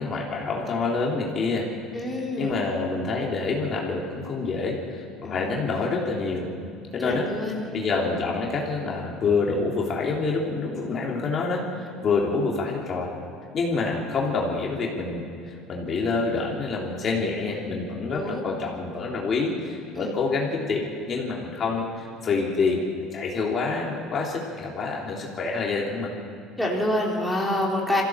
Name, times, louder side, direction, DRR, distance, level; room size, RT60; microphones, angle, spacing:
voice 1, 0.0-1.7 2.1-6.5 6.9-7.3 7.7-13.1 13.5-22.8 23.1-26.1, left 4 dB, 35° left, -2 dB, 3.3 m, -27 dB
voice 2, 1.9-2.6 5.2-5.6 7.0-7.6 18.1-18.4 20.0-20.1 26.6-28.0, left 1 dB, ahead, -4 dB, 3.8 m, -27 dB
22.0 x 16.0 x 7.8 m, 2.5 s
cardioid pair, 125°, 0 cm